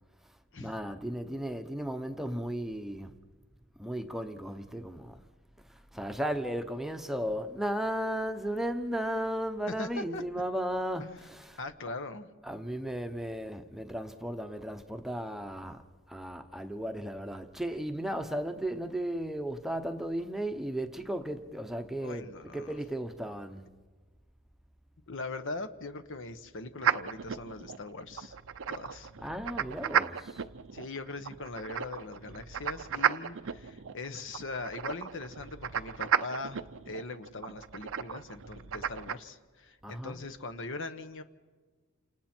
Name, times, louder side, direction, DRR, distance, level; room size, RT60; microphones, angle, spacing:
voice 1, 0.6-3.1 3.8-5.2 5.7-11.9 12.4-23.7 29.2-30.4 39.8-40.3, right 1 dB, ahead, 0.9 m, -35 dB
voice 2, 9.7-10.2 11.6-12.3 22.0-22.8 25.1-28.4 28.7-29.1 30.7-41.2, left 3 dB, 60° left, 1.2 m, -41 dB
sound 1, 26.8-39.2, right 8 dB, 65° right, 0.6 m, -34 dB
29.5 x 27.5 x 4.5 m
head